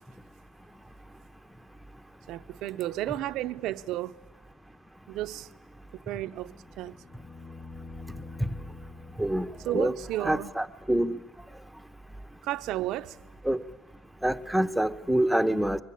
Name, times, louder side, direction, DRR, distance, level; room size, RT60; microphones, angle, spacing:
voice 1, 2.3-4.2 5.1-5.5 6.1-7.0 9.7-10.5 12.4-13.2, right 15 dB, 65° right, 0.7 m, -33 dB
sound 1, 6.3-10.4 12.8-12.9, left 3 dB, 55° left, 5.2 m, -46 dB
voice 2, 9.2-9.9 10.2-11.2 13.4-13.6 14.2-15.8, right 1 dB, ahead, 1.1 m, -26 dB
23.0 x 21.0 x 8.6 m
supercardioid pair, 100°, 0 cm